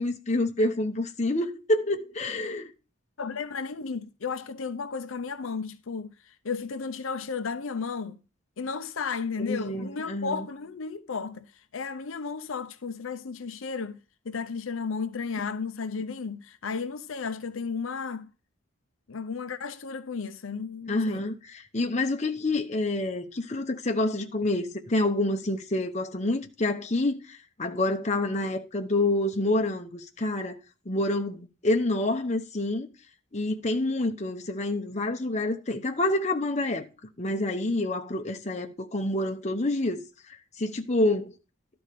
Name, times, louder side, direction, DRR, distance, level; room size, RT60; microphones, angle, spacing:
voice 1, 0.0-2.7 9.4-10.5 20.9-30.6 30.9-32.9 33.3-36.9 37.2-40.0 40.6-41.3, left 2 dB, 35° left, 0.9 m, -27 dB
voice 2, 3.2-8.2 8.6-11.5 11.7-14.0 14.2-18.3 19.1-21.3, left 5 dB, 80° left, 0.7 m, -34 dB
12.0 x 4.4 x 6.7 m
head